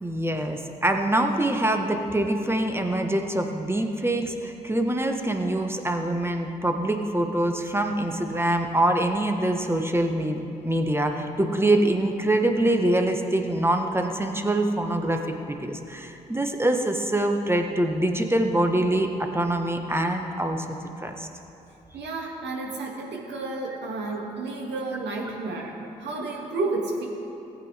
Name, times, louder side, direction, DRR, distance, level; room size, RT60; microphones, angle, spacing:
voice 1, 0.0-21.3, right 1 dB, 10° right, 4 dB, 1.5 m, -25 dB
voice 2, 21.9-25.7 26.0-27.1, right 3 dB, 65° right, -2 dB, 2.4 m, -31 dB
19.0 x 8.8 x 3.6 m, 2.9 s
hypercardioid pair, 40°, 20 cm